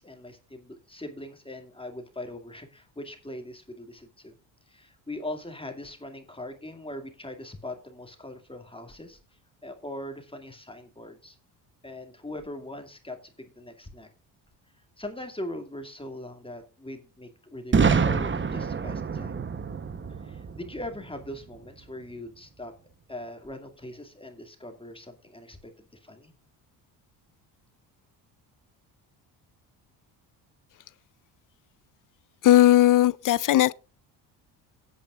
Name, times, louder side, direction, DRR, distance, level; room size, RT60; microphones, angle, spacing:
voice 1, 0.0-4.3 4.7-9.2 9.6-11.4 11.8-14.1 15.0-19.4 20.1-22.7 23.1-26.3, left 1 dB, 10° left, 2.3 m, -41 dB
Boom, 17.7-21.6, right 5 dB, 25° right, 1.0 m, -26 dB
voice 2, 32.4-33.7, left 13 dB, 45° left, 0.5 m, -18 dB
17.0 x 8.4 x 2.4 m
supercardioid pair, 75°, 46 cm